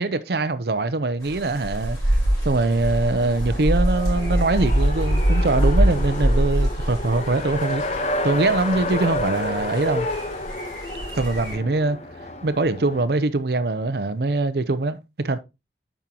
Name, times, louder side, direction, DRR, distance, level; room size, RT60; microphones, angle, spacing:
voice 1, 0.0-2.2 2.4-10.1 11.1-12.0 12.4-15.0 15.2-15.4, right 2 dB, 60° right, 0.6 m, -23 dB
sound 1, 1.2-11.6, right 1 dB, 20° left, 5.2 m, -24 dB
Race car auto racing, 3.0-13.0, left 2 dB, 40° left, 1.0 m, -31 dB
8.9 x 6.1 x 2.9 m
head